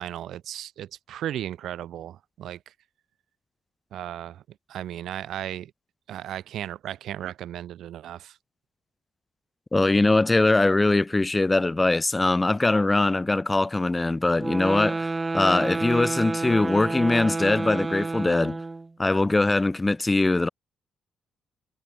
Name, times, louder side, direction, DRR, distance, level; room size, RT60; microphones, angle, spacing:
voice 1, 0.0-2.6 3.9-4.4 4.7-5.7 6.1-8.4, right 11 dB, 75° right, 2.7 m, -35 dB
voice 2, 9.7-15.1 15.3-18.6 19.0-20.5, left 2 dB, 15° left, 2.4 m, -22 dB
sound 1, 14.4-18.9, right 3 dB, 20° right, 0.8 m, -29 dB
cardioid pair, 90°, 0 cm